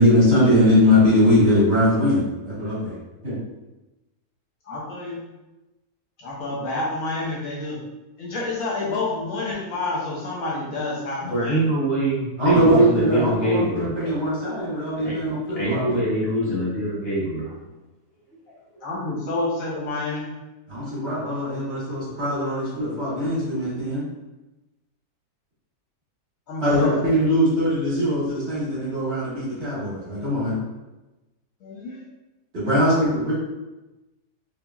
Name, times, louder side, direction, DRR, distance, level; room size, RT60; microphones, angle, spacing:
voice 1, 0.0-2.9 3.2-3.3 12.4-15.8 20.7-24.0 26.6-30.6 32.5-33.3, equal, 50° right, -9 dB, 1.2 m, -21 dB
voice 2, 4.7-5.2 6.2-7.8 8.2-11.6 18.8-20.3 26.5-27.0 31.6-32.0 32.8-33.0, left 2 dB, 65° left, -5 dB, 1.1 m, -29 dB
voice 3, 11.2-14.2 15.0-15.1 15.6-17.5, right 1 dB, 45° left, -8 dB, 1.0 m, -24 dB
2.8 x 2.6 x 2.3 m, 1.1 s
omnidirectional pair, 1.6 m